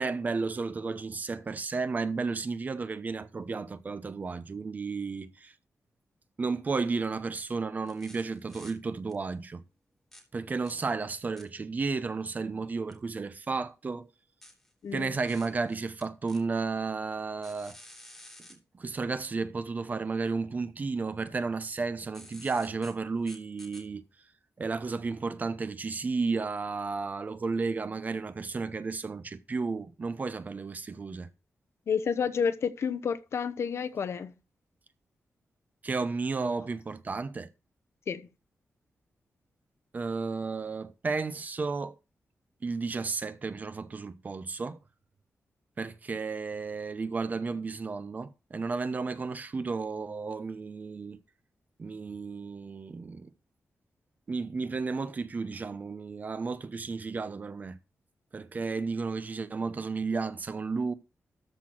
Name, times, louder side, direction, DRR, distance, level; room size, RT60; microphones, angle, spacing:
voice 1, 0.0-5.5 6.4-9.6 10.3-14.1 14.9-17.8 18.7-24.0 24.6-31.3 35.8-37.5 39.9-41.9 42.6-44.8 45.8-51.2 51.8-53.3 54.3-57.8 58.3-60.9, right 4 dB, 35° right, 0.8 m, -33 dB
sound 1, 7.9-8.7 9.1-9.2 10.1-10.2 10.6-10.7 11.4-11.5 12.9-13.0 14.4-16.4 17.4-18.5 22.1-22.9 23.2-23.8, left 1 dB, 10° left, 3.0 m, -51 dB
voice 2, 14.8-15.1 31.9-34.3 38.1-38.3, left 6 dB, 60° left, 0.8 m, -30 dB
13.5 x 4.5 x 6.0 m
wide cardioid pair, 165°, 5 cm